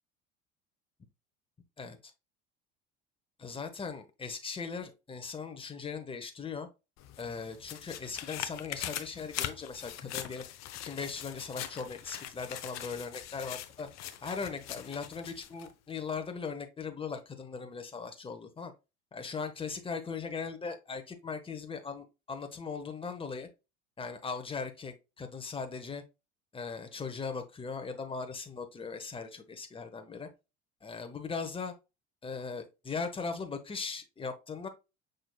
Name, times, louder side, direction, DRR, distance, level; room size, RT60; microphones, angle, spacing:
voice 1, 1.8-2.1 3.4-6.7 7.2-10.4 10.8-13.9 14.2-18.7 19.1-23.5 24.0-26.0 26.5-30.3 30.8-31.7 32.2-34.7, left 5 dB, 15° left, 1.0 m, -39 dB
sound 1, 7.0-15.7 16.1-16.2, left 11 dB, 50° left, 0.8 m, -42 dB
6.1 x 3.8 x 2.3 m
hypercardioid pair, 70°, 35 cm